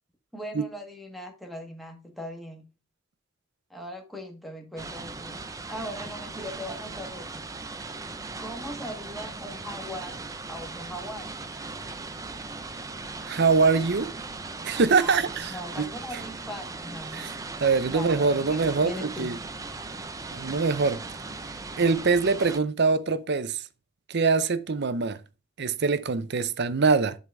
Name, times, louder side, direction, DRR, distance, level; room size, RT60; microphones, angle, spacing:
voice 1, 0.3-2.6 3.7-5.4 5.7-7.4 8.4-10.1 10.5-11.3 15.0-17.4 17.8-19.3, equal, ahead, 1.4 m, -39 dB
sound 1, 4.8-22.6, right 3 dB, 15° right, 0.5 m, -38 dB
voice 2, 13.3-14.1 14.6-16.2 17.1-17.3 17.6-19.4 20.3-21.0 21.8-23.6 24.1-25.2 25.6-27.2, right 4 dB, 55° right, 0.7 m, -24 dB
11.0 x 3.9 x 3.4 m
head